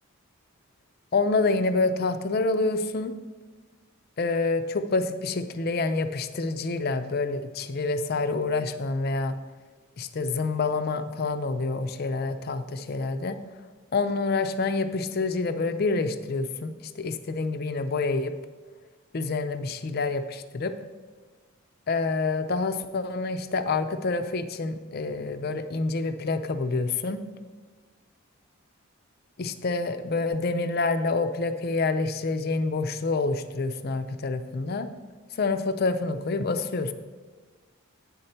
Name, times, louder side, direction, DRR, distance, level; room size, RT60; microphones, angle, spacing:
voice 1, 1.1-3.2 4.2-9.4 10.0-13.4 13.9-18.3 19.1-20.7 21.9-27.2 29.4-34.9 35.3-36.9, left 3 dB, 45° left, 10 dB, 0.4 m, -27 dB
8.8 x 4.3 x 6.6 m, 1.4 s
head